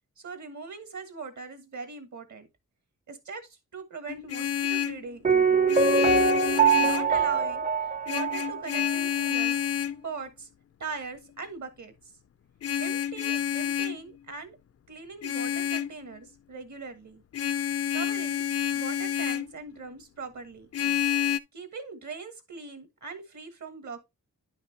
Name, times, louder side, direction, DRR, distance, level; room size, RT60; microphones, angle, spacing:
voice 1, 0.2-2.5 3.1-5.7 6.8-9.6 10.0-10.5 10.8-11.9 12.7-14.6 14.9-17.2 17.9-18.4 18.7-20.7 21.5-24.1, right 4 dB, 60° right, 1.6 m, -41 dB
Vehicle horn car horn honking, 4.1-5.0 5.7-7.2 8.1-10.0 12.6-14.0 15.2-15.9 17.3-19.5 20.7-21.4, left 9 dB, 50° left, 0.4 m, -28 dB
Piano, 5.3-9.0 9.3-9.4, right 5 dB, 25° right, 0.6 m, -23 dB
10.0 x 5.9 x 2.8 m
wide cardioid pair, 110°, 33 cm